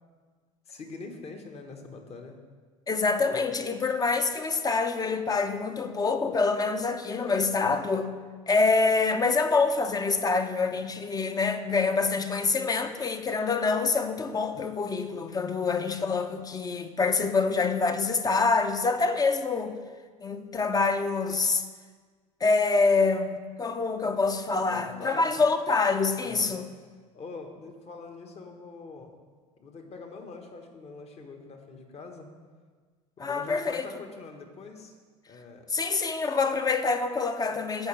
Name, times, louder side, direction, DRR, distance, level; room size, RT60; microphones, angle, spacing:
voice 1, 0.7-2.4 24.2-24.3 24.6-25.5 26.2-26.6 27.1-29.1 29.6-32.3 33.2-35.0 35.3-35.7, left 3 dB, 35° left, 4 dB, 1.4 m, -44 dB
voice 2, 2.9-8.1 8.5-19.7 20.2-21.6 22.4-23.3 23.6-26.6 33.2-33.9 35.7-37.9, left 4 dB, 20° left, 8 dB, 0.8 m, -26 dB
15.0 x 5.1 x 3.4 m, 1.5 s
hypercardioid pair, 70°, 17 cm